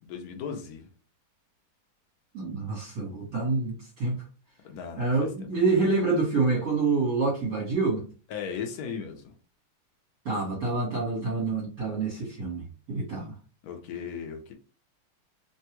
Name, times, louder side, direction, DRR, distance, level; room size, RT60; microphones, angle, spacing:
voice 1, 0.0-0.9 4.6-5.5 8.3-9.3 13.6-14.5, left 6 dB, 80° left, 0.8 m, -37 dB
voice 2, 2.3-4.2 5.0-8.0 10.2-13.3, right 3 dB, 55° right, 1.6 m, -27 dB
3.4 x 2.3 x 2.9 m
omnidirectional pair, 2.4 m